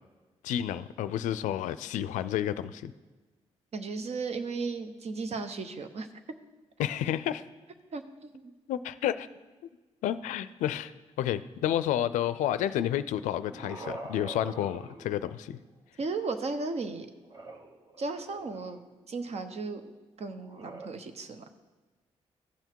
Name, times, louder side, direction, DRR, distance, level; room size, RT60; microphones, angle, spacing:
voice 1, 0.4-2.9 6.8-7.4 8.7-9.3 10.0-10.9 11.2-15.6, left 11 dB, 85° left, 14 dB, 0.4 m, -30 dB
voice 2, 3.7-6.1 7.9-8.5 16.0-17.1 18.0-18.8 19.1-19.9 20.2-21.5, right 4 dB, 55° right, 8 dB, 0.9 m, -35 dB
sound 1, 13.1-15.7 17.2-19.0 20.4-20.9, right 2 dB, 40° right, 1.1 m, -45 dB
14.0 x 5.7 x 4.6 m, 1.3 s
supercardioid pair, 55°, 13 cm